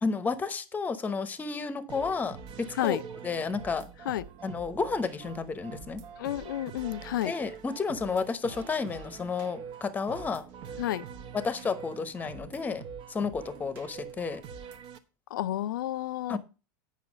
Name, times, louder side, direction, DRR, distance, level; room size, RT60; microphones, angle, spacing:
voice 1, 0.0-3.9 4.4-6.0 7.2-10.4 11.3-12.8 13.1-14.4 16.3-16.4, left 4 dB, 15° left, 0.9 m, -31 dB
sound 1, 1.9-15.0, right 7 dB, 45° right, 1.1 m, -45 dB
voice 2, 6.2-7.3 10.8-11.0 15.3-16.4, left 13 dB, 85° left, 0.5 m, -30 dB
8.3 x 5.8 x 6.1 m
supercardioid pair, 130°, 11 cm